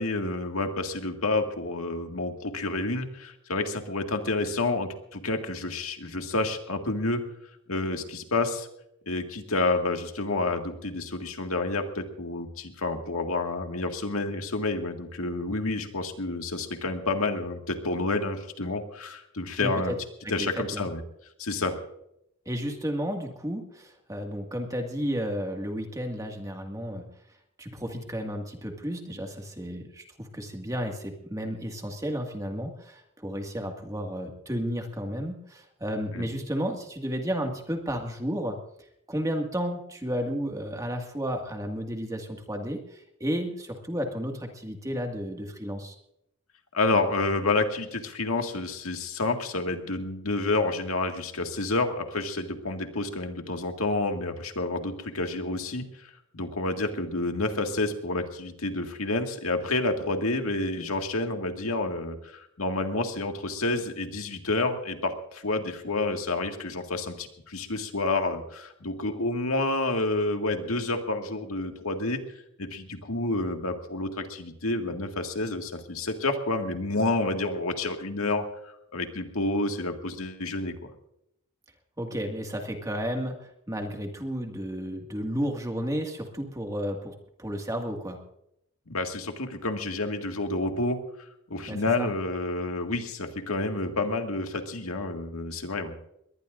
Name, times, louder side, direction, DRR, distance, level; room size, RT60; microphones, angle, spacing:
voice 1, 0.0-7.2 7.7-8.7 9.1-19.9 20.3-21.0 21.4-21.8 36.1-36.3 46.7-72.2 72.6-80.9 88.9-91.0 91.5-95.9, left 2 dB, 90° left, 4 dB, 2.0 m, -29 dB
voice 2, 19.6-20.0 20.2-20.9 22.5-27.1 27.6-38.6 39.1-46.0 82.0-88.2 91.7-92.1, equal, 15° right, 3 dB, 1.9 m, -32 dB
22.0 x 19.5 x 2.6 m, 0.78 s
head